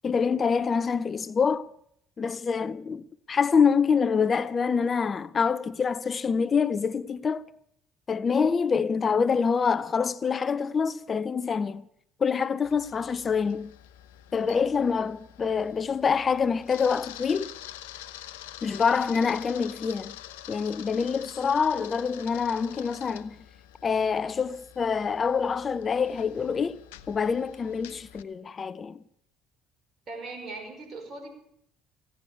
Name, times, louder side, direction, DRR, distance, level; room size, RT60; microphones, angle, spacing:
voice 1, 0.0-1.7 2.2-7.4 8.1-11.8 12.2-13.7 14.3-17.5 18.6-20.2 20.5-23.4 23.8-26.8 27.1-29.0, left 6 dB, 40° left, 0.6 m, -26 dB
Camera, 12.6-28.2, left 13 dB, 85° left, 0.6 m, -46 dB
voice 2, 30.1-31.3, right 3 dB, 50° right, 5.3 m, -39 dB
16.5 x 9.4 x 8.4 m
hypercardioid pair, 60°, 0 cm